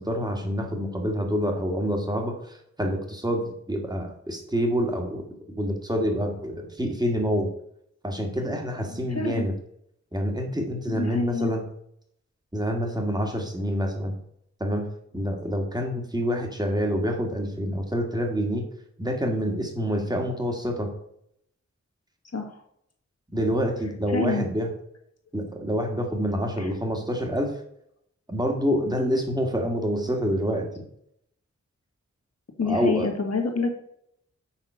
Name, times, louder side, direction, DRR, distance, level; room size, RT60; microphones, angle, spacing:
voice 1, 0.0-5.2 5.6-7.5 8.0-9.5 10.1-11.6 12.5-14.2 14.6-14.9 15.1-18.6 19.0-20.9 23.3-24.7 25.3-27.5 28.3-30.7 32.7-33.1, equal, 15° right, 3 dB, 1.9 m, -27 dB
voice 2, 8.9-9.4 10.9-11.5 22.3-22.6 24.1-24.5 26.6-26.7 32.6-33.7, left 4 dB, 60° left, 3 dB, 1.8 m, -28 dB
7.4 x 5.8 x 5.6 m, 0.71 s
wide cardioid pair, 95°, 29 cm